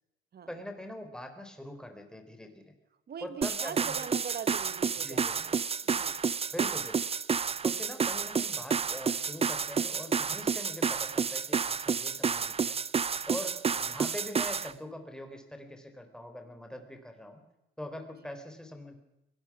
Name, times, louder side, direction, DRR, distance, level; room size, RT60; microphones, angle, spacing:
voice 1, 0.5-2.7 3.2-3.9 5.0-5.5 6.5-7.0 7.6-12.8 13.3-17.4 17.8-19.0, left 1 dB, 5° left, 6 dB, 4.2 m, -43 dB
voice 2, 3.1-5.6 5.8-6.3, right 7 dB, 55° right, 13 dB, 1.6 m, -42 dB
sound 1, 3.4-14.7, right 6 dB, 30° right, 0.6 m, -30 dB
22.5 x 18.5 x 6.2 m, 0.89 s
cardioid pair, 90°, 20 cm